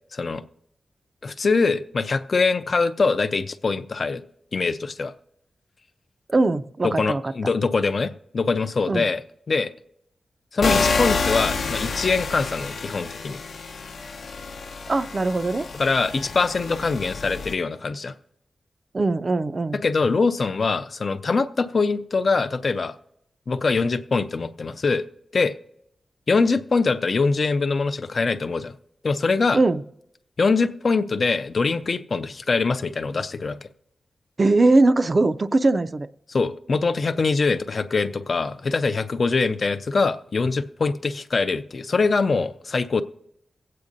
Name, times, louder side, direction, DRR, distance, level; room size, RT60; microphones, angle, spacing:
voice 1, 0.1-0.4 1.2-4.2 4.5-5.1 6.8-9.2 9.5-9.7 10.5-13.4 15.7-18.1 19.8-22.9 23.5-25.0 25.3-25.5 26.3-28.7 29.0-29.6 30.4-33.7 36.3-43.0, left 4 dB, 45° left, 11 dB, 0.4 m, -23 dB
voice 2, 6.3-7.3 8.9-9.1 14.9-15.7 18.9-19.8 29.5-29.8 34.4-36.1, right 2 dB, 35° right, 13 dB, 0.3 m, -20 dB
sound 1, 10.6-17.5, left 4 dB, 80° left, 0.7 m, -28 dB
23.0 x 8.4 x 2.6 m, 0.77 s
wide cardioid pair, 150°, 0 cm